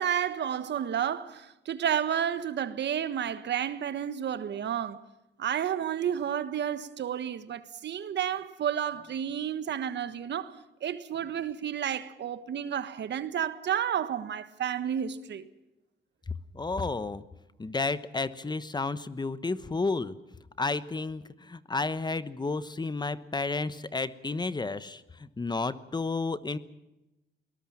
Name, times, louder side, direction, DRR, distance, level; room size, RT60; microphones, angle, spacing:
voice 1, 0.0-5.0 5.4-15.5, right 9 dB, 60° right, 1.4 m, -31 dB
voice 2, 16.5-17.2 17.6-20.2 20.6-26.6, left 3 dB, 20° left, 1.1 m, -32 dB
22.0 x 19.0 x 7.4 m
cardioid pair, 90°, 20 cm